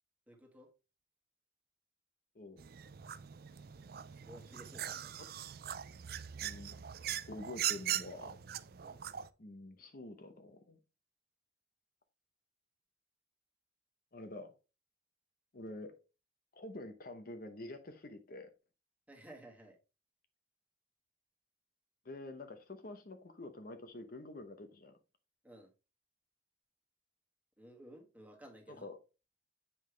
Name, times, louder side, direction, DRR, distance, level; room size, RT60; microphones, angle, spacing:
voice 1, 0.3-0.7 4.2-5.2 8.8-9.0 19.1-19.8 25.4-25.7 27.6-28.9, right 1 dB, 5° right, 1.6 m, -55 dB
sound 1, 2.6-9.3, right 11 dB, 50° right, 0.4 m, -41 dB
voice 2, 6.4-8.3 9.4-10.8 14.1-14.5 15.5-15.9 16.5-18.5 22.0-24.9 28.7-29.0, left 2 dB, 50° left, 0.8 m, -47 dB
7.5 x 5.6 x 3.3 m
head